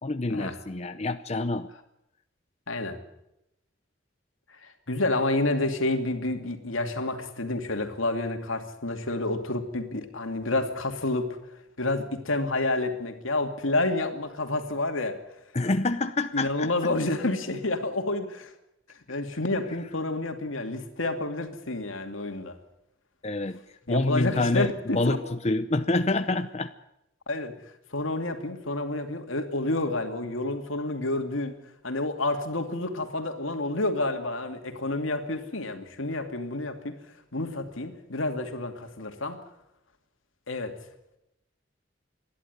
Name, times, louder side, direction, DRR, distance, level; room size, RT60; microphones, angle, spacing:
voice 1, 0.0-1.7 15.5-16.7 23.2-23.6 23.9-26.7, left 2 dB, 35° left, 9 dB, 0.7 m, -27 dB
voice 2, 2.7-3.0 4.6-11.3 11.8-15.2 16.3-18.5 19.1-22.5 23.9-25.2 27.3-27.5 27.9-31.5 31.8-36.9 37.3-39.4 40.5-40.7, left 2 dB, 85° left, 5 dB, 2.6 m, -29 dB
29.0 x 11.5 x 9.6 m, 0.87 s
head